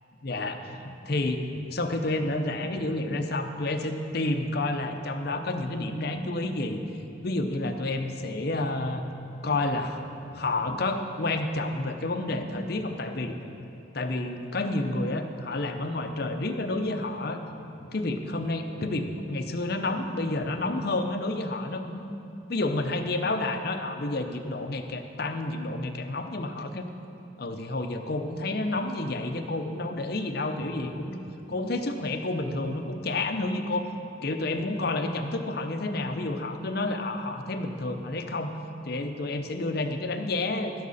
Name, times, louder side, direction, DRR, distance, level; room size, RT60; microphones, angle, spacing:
voice 1, 0.2-6.8 7.2-9.0 9.4-10.0 10.3-13.3 13.9-17.4 17.9-22.1 22.5-26.9 27.4-31.2 31.5-33.9 34.2-38.5 38.8-40.7, left 2 dB, 50° left, 6 dB, 0.7 m, -30 dB
11.5 x 11.5 x 4.1 m, 2.7 s
head